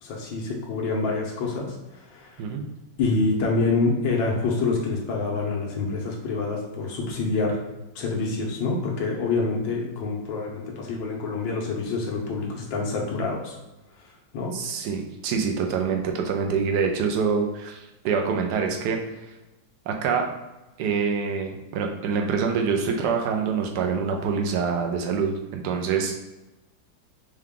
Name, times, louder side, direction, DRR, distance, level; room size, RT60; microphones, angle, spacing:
voice 1, 0.0-2.4 3.0-7.6 7.9-13.6 14.3-14.6, left 3 dB, 80° left, -1 dB, 1.6 m, -26 dB
voice 2, 14.5-19.0 19.9-20.3 20.8-26.2, right 6 dB, 70° right, 2 dB, 1.1 m, -25 dB
4.7 x 2.3 x 3.5 m, 1.0 s
omnidirectional pair, 2.0 m